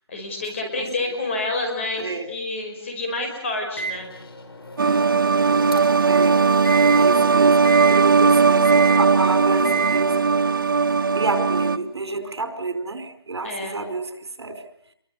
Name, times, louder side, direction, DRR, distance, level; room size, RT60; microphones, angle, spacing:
voice 1, 0.1-4.1 13.4-13.8, left 2 dB, 30° left, 4 dB, 5.3 m, -28 dB
Microwave oven, 3.8-6.1 6.6-7.0 7.6-8.0 8.6-9.0 9.6-10.0, right 5 dB, 60° left, 5.8 m, -29 dB
sound 1, 4.8-11.8, right 4 dB, 50° right, 1.4 m, -18 dB
voice 2, 6.1-6.4 7.0-10.3 11.1-14.6, right 3 dB, 75° right, 8 dB, 4.8 m, -29 dB
27.0 x 23.5 x 6.7 m, 0.64 s
hypercardioid pair, 175°, 14 cm